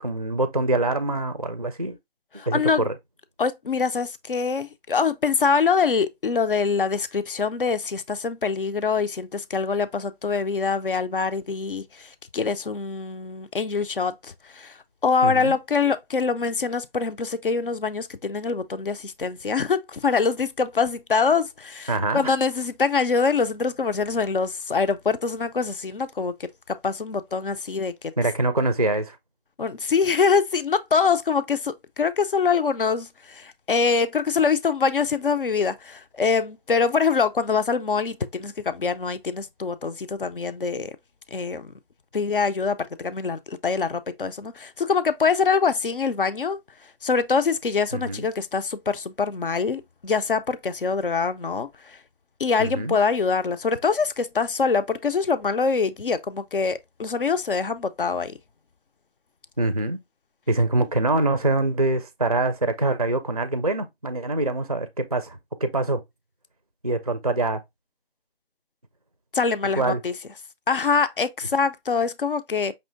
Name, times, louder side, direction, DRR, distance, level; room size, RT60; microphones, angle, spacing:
voice 1, 0.0-2.0 2.5-2.9 15.2-15.6 21.9-22.3 28.2-29.2 47.9-48.3 52.6-53.0 59.6-60.0 60.5-66.0 66.8-67.6 69.8-70.0, right 2 dB, 40° right, 0.4 m, -24 dB
voice 2, 2.4-2.9 3.4-27.9 29.6-41.0 41.3-41.7 42.1-46.6 47.0-52.0 52.4-58.4 69.3-70.1 70.7-72.7, left 5 dB, 60° left, 0.6 m, -24 dB
5.4 x 3.1 x 2.5 m
figure-of-eight pair, 170°, 31 cm